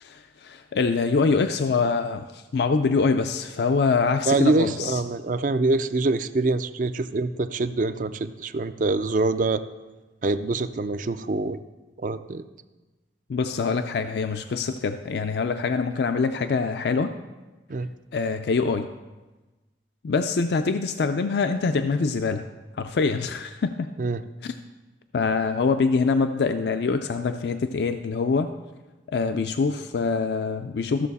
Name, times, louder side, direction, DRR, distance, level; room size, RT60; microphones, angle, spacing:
voice 1, 0.0-5.0 13.3-17.1 18.1-18.9 20.0-22.5 22.8-23.9 24.4-24.6 25.1-28.5 29.1-31.1, left 4 dB, 65° left, 8 dB, 0.4 m, -24 dB
voice 2, 4.3-9.6 10.2-11.6 12.0-12.4 17.7-17.9 24.0-24.2, right 3 dB, 45° right, 12 dB, 0.4 m, -25 dB
14.0 x 6.6 x 4.1 m, 1.2 s
head